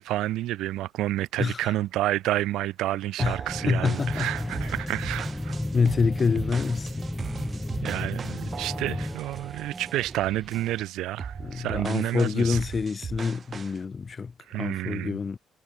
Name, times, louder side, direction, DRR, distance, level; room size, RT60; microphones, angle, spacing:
voice 1, 0.0-5.6 7.8-12.6 14.5-15.2, right 15 dB, 90° right, 1.1 m, -29 dB
voice 2, 1.4-1.7 3.2-3.4 3.7-4.3 5.7-7.0 11.4-15.4, left 5 dB, 35° left, 1.7 m, -27 dB
sound 1, 3.2-10.1 10.5-10.8 11.2-13.8, right 6 dB, 45° right, 4.3 m, -39 dB
sound 2, 3.5-9.2, left 1 dB, 10° left, 1.1 m, -33 dB
sound 3, 3.9-10.8, right 3 dB, 25° right, 3.8 m, -44 dB
cardioid pair, 90°, 0 cm